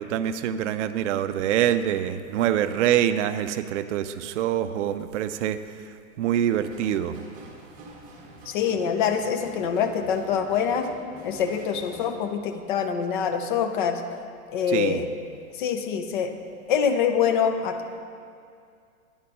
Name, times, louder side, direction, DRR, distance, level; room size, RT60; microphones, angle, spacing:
voice 1, 0.0-5.6 6.2-7.2 14.7-15.0, right 10 dB, 55° right, 10 dB, 0.5 m, -25 dB
sound 1, 6.5-12.1, right 1 dB, 20° right, 1.0 m, -46 dB
voice 2, 8.5-10.9 11.2-14.0 14.5-15.1 15.6-16.3 16.7-17.8, left 7 dB, 35° left, 7 dB, 0.5 m, -25 dB
10.5 x 4.1 x 5.3 m, 2.3 s
hypercardioid pair, 145°, 45 cm